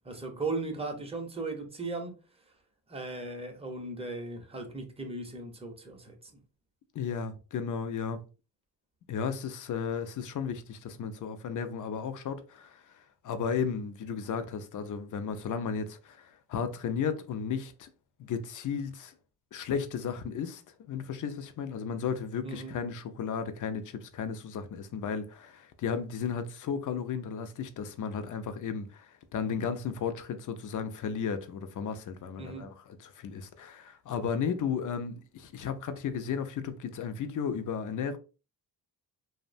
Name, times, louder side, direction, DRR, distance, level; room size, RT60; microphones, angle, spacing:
voice 1, 0.0-2.1 2.9-6.3 22.4-22.7 32.4-32.6, right 3 dB, 15° right, 0.6 m, -37 dB
voice 2, 6.9-8.2 9.1-17.9 18.2-19.1 19.5-20.6 20.9-38.2, left 6 dB, 50° left, 0.5 m, -34 dB
2.6 x 2.1 x 2.5 m
cardioid pair, 85°, 42 cm